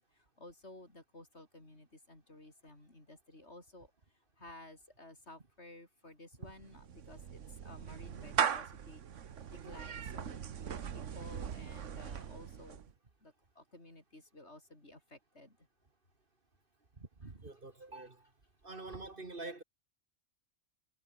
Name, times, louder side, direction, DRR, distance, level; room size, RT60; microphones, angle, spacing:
voice 1, 0.0-3.9 4.4-10.4 10.7-12.8 13.2-15.6 17.2-17.3, left 1 dB, 60° left, 6.5 m, -55 dB
Clapping / Meow, 6.5-12.9, right 8 dB, 75° right, 1.4 m, -39 dB
voice 2, 17.0-18.3 18.6-19.6, right 2 dB, 45° right, 2.4 m, -46 dB
omnidirectional pair, 1.3 m